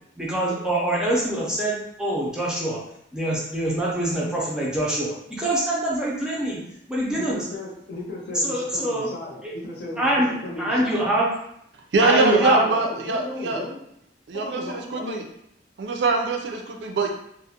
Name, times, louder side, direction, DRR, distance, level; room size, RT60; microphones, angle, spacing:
voice 1, 0.2-2.8 3.1-6.6 6.9-7.4 8.3-9.1 9.4-9.5 10.0-10.3 10.6-11.3 12.0-12.7, right 1 dB, 5° right, -6 dB, 0.4 m, -24 dB
voice 2, 7.1-11.1 12.0-13.8 14.3-15.2, left 2 dB, 60° left, -2 dB, 0.6 m, -36 dB
voice 3, 11.9-13.6 14.3-15.2 15.8-17.1, right 3 dB, 70° right, 2 dB, 0.4 m, -23 dB
2.3 x 2.0 x 2.8 m, 0.75 s
head